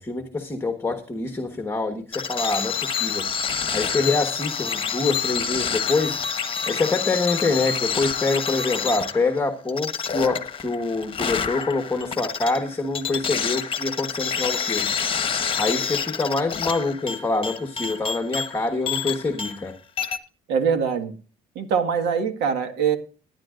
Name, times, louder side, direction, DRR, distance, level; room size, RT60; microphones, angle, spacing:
voice 1, 0.0-3.3 3.7-14.9 15.5-19.7, left 3 dB, 15° left, 6 dB, 1.3 m, -26 dB
sound 1, 2.1-19.7 20.0-20.2, left 6 dB, 30° left, 1.2 m, -28 dB
voice 2, 20.5-21.1 21.6-23.0, right 6 dB, 85° right, 6 dB, 1.8 m, -23 dB
19.0 x 10.5 x 2.5 m, 0.36 s
cardioid pair, 110°, 17 cm